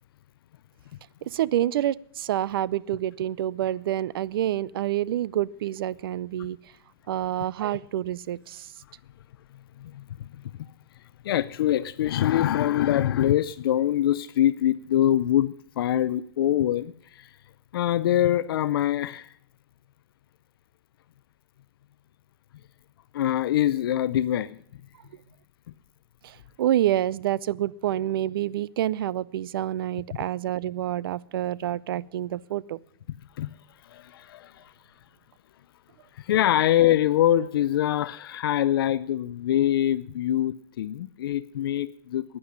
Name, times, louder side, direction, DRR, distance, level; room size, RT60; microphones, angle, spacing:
voice 1, 1.2-6.6 7.1-8.7 26.2-32.8, right 12 dB, 75° right, 22 dB, 0.5 m, -27 dB
voice 2, 9.8-10.4 11.2-17.3 17.7-19.3 23.1-24.6 33.4-33.5 33.9-34.7 36.2-42.2, left 12 dB, 75° left, 15 dB, 0.5 m, -24 dB
10.0 x 9.7 x 9.8 m, 0.64 s
supercardioid pair, 150°, 12 cm